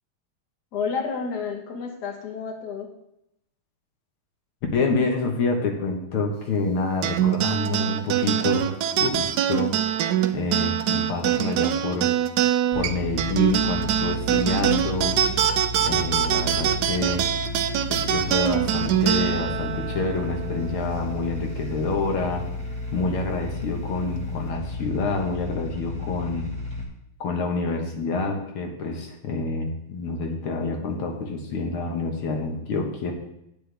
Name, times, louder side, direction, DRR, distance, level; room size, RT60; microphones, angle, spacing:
voice 1, 0.7-2.9, left 5 dB, 55° left, 2 dB, 1.7 m, -30 dB
voice 2, 4.7-9.8 10.3-12.1 12.8-15.2 15.8-17.2 17.9-22.5 22.9-26.5 27.2-33.1, left 3 dB, 85° left, 2 dB, 2.2 m, -27 dB
sound 1, 7.0-21.8, right 10 dB, 85° right, 0.8 m, -24 dB
sound 2, 12.7-26.8, left 2 dB, 5° left, 1.2 m, -33 dB
9.6 x 8.8 x 3.4 m, 0.82 s
omnidirectional pair, 2.3 m